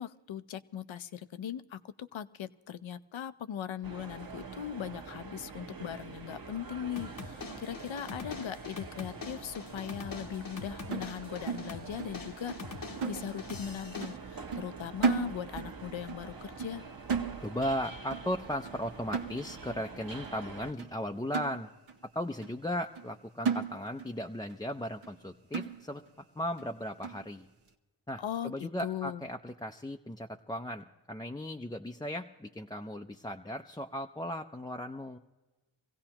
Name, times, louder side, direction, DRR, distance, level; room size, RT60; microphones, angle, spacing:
voice 1, 0.0-12.5 13.1-16.8 28.2-29.2, left 9 dB, 75° left, 13 dB, 0.7 m, -39 dB
sound 1, 3.8-20.7, right 4 dB, 45° right, 1.1 m, -45 dB
sound 2, 7.0-14.2, left 4 dB, 45° left, 0.9 m, -45 dB
sound 3, 10.9-12.2 12.5-12.7 13.0-13.7 14.0-14.2 14.5-15.8 16.1-16.3 16.6-16.8 17.1-17.8 18.1-18.3 18.6-18.8 19.1-19.8 20.2-20.4 20.8-20.9 21.3-22.0 22.4-22.5 23.0-23.1 23.4-24.2 24.5-24.6 25.0-25.2 25.5-26.1 26.6-26.7 27.0-27.3, right 6 dB, 90° right, 1.0 m, -35 dB
voice 2, 17.4-21.7 22.1-26.0 26.3-27.5 28.1-35.2, equal, 10° left, 3 dB, 0.4 m, -37 dB
24.0 x 16.5 x 2.9 m, 1.1 s
cardioid pair, 65°, 47 cm